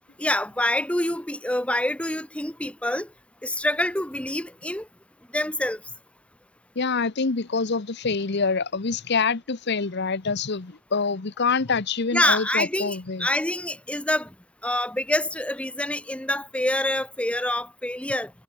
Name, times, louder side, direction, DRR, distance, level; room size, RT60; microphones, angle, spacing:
voice 1, 0.2-3.1 3.4-4.9 5.3-5.8 12.1-14.3 14.6-18.3, left 1 dB, 5° left, 1.4 m, -26 dB
voice 2, 6.8-13.3, left 4 dB, 55° left, 0.9 m, -26 dB
head